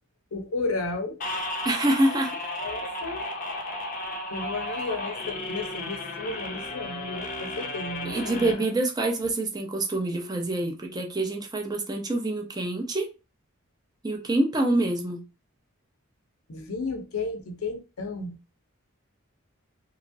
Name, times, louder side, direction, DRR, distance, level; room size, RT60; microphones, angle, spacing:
voice 1, 0.3-1.2 2.6-3.3 4.3-8.7 16.5-18.4, left 3 dB, 85° left, 0.6 m, -33 dB
sound 1, 1.2-8.5, left 1 dB, 40° left, 0.5 m, -34 dB
voice 2, 1.6-2.4 8.0-13.1 14.0-15.2, right 1 dB, 20° right, 0.5 m, -26 dB
3.0 x 2.3 x 2.6 m
head